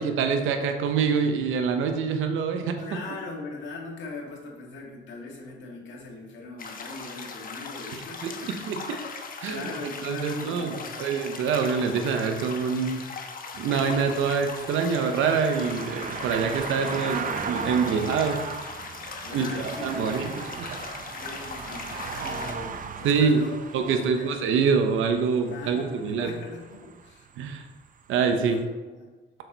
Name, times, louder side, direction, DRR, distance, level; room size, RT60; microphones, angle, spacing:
voice 1, 0.0-3.0 8.2-9.0 9.4-13.0 13.5-18.4 19.3-20.3 20.6-20.8 23.0-23.4 23.7-26.3 27.4-27.6 28.1-28.6, right 5 dB, 90° right, 6 dB, 0.9 m, -25 dB
voice 2, 2.8-8.7 9.5-11.0 19.2-20.6 21.1-24.4 25.5-27.3 28.3-29.1, left 3 dB, 70° left, -1 dB, 2.1 m, -40 dB
sound 1, 6.6-22.5, left 4 dB, 45° left, 1.1 m, -39 dB
sound 2, 13.5-28.1 28.5-28.6, right 6 dB, 40° right, 0.6 m, -37 dB
6.5 x 6.3 x 4.0 m, 1.2 s
cardioid pair, 90°, 20 cm